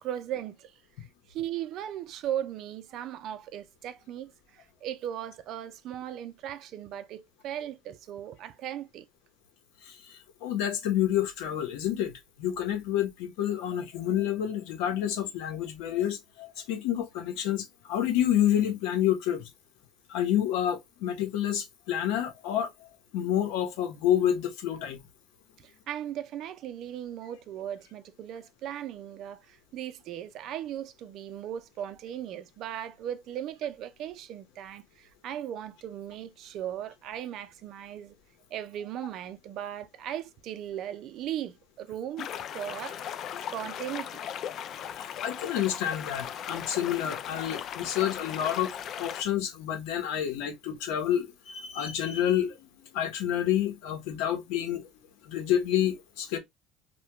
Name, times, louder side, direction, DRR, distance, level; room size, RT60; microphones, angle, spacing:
voice 1, 0.0-0.8 1.3-9.1 25.6-38.1 38.5-42.3 42.5-43.1 43.5-44.3, right 11 dB, 55° right, 0.5 m, -37 dB
voice 2, 9.8-19.5 20.1-22.9 23.1-25.0 45.0-48.7 49.0-54.9 55.2-56.4, left 10 dB, 85° left, 0.9 m, -29 dB
sound 1, 42.2-49.2, left 9 dB, 50° left, 0.3 m, -38 dB
2.8 x 2.2 x 3.3 m
cardioid pair, 130°, 0 cm